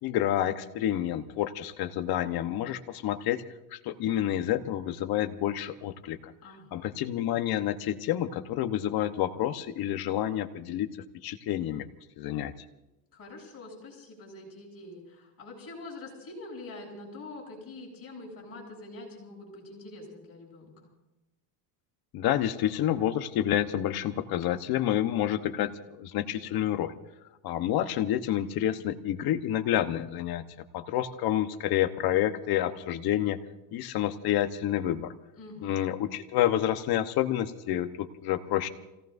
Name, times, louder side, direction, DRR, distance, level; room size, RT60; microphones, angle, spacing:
voice 1, 0.0-3.4 3.7-6.3 6.7-10.9 11.2-11.9 12.2-12.5 22.1-25.7 26.0-27.0 27.4-30.4 30.7-33.4 33.7-35.1 35.6-38.7, left 12 dB, 50° left, 10 dB, 1.2 m, -29 dB
voice 2, 6.4-6.9 13.1-20.9 35.4-35.9, left 2 dB, 30° left, -3 dB, 8.0 m, -45 dB
29.0 x 17.5 x 2.7 m, 0.99 s
cardioid pair, 135°, 45 cm